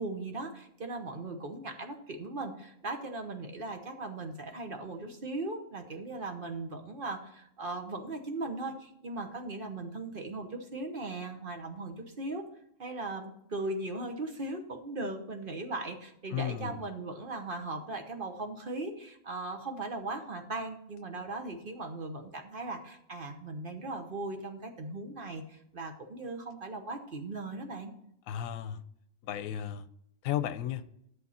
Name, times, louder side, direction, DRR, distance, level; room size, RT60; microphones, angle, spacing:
voice 1, 0.0-12.5 12.8-27.9, right 2 dB, 45° right, 1.1 m, -38 dB
voice 2, 16.3-16.8 28.3-28.8 29.2-29.9 30.2-30.8, left 10 dB, 75° left, 1.0 m, -34 dB
11.0 x 7.1 x 4.2 m
omnidirectional pair, 1.4 m